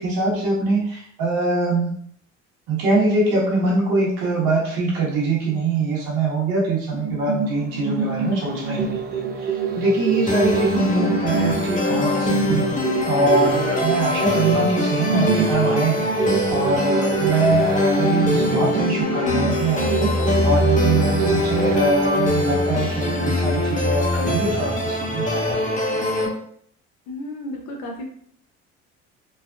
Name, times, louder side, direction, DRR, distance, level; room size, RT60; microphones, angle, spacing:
voice 1, 0.0-1.9 2.7-12.7 13.1-20.1 20.4-26.0, right 2 dB, 75° right, -5 dB, 1.1 m, -23 dB
sound 1, 6.9-23.2 23.5-23.6, right 5 dB, 30° right, 0.6 m, -26 dB
sound 2, 10.3-26.3, left 2 dB, 20° left, 0.7 m, -23 dB
voice 2, 27.1-28.0, left 1 dB, 80° left, 1 dB, 0.6 m, -33 dB
3.2 x 2.4 x 2.2 m, 0.64 s
hypercardioid pair, 65°, 34 cm